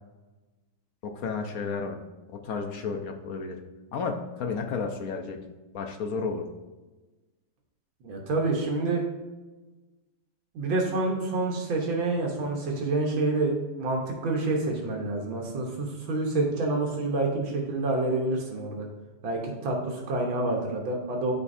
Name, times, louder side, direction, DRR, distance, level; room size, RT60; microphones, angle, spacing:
voice 1, 1.1-2.0 2.3-3.6 3.9-5.4 5.7-6.4, left 5 dB, 65° left, 4 dB, 0.9 m, -32 dB
voice 2, 8.0-9.0 10.5-18.9 19.2-21.3, right 2 dB, 80° right, 0 dB, 1.9 m, -28 dB
12.5 x 4.2 x 2.6 m, 1.2 s
omnidirectional pair, 2.1 m